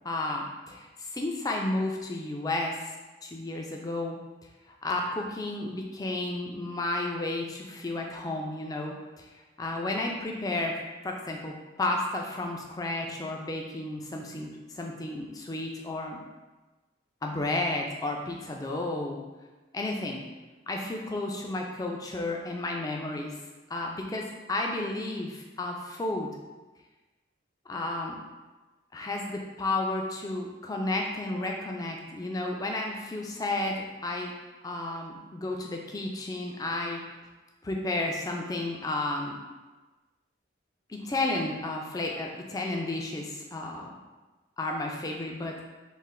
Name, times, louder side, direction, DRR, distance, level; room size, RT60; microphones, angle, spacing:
voice 1, 0.0-2.9 3.2-4.2 4.7-10.8 11.0-14.5 14.7-16.2 17.2-19.2 19.7-20.2 20.7-23.4 23.7-26.3 27.7-28.2 28.9-34.3 34.6-37.0 37.6-39.3 40.9-43.9 44.6-45.7, left 2 dB, 20° left, 1 dB, 0.3 m, -32 dB
3.1 x 2.5 x 3.6 m, 1.2 s
head